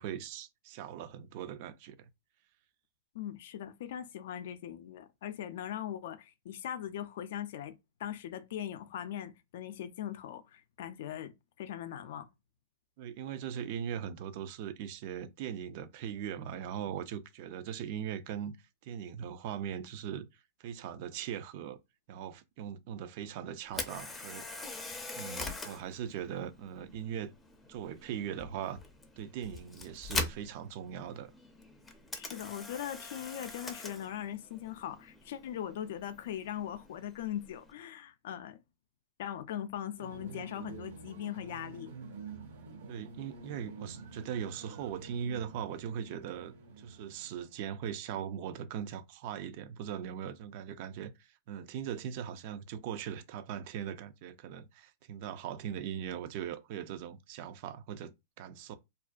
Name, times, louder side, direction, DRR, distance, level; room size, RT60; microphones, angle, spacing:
voice 1, 0.0-2.1 13.0-18.6 18.8-20.3 20.6-21.8 22.1-24.5 25.1-27.3 27.7-28.8 29.2-31.3 42.9-58.1 58.4-58.8, right 9 dB, 50° right, 0.4 m, -40 dB
voice 2, 3.1-12.3 32.1-38.6 39.2-41.9, left 10 dB, 65° left, 0.4 m, -40 dB
Camera, 23.6-37.7, left 3 dB, 15° left, 0.5 m, -43 dB
sound 1, 40.0-48.0, right 4 dB, 85° right, 1.2 m, -48 dB
2.4 x 2.1 x 2.4 m
hypercardioid pair, 120°, 0 cm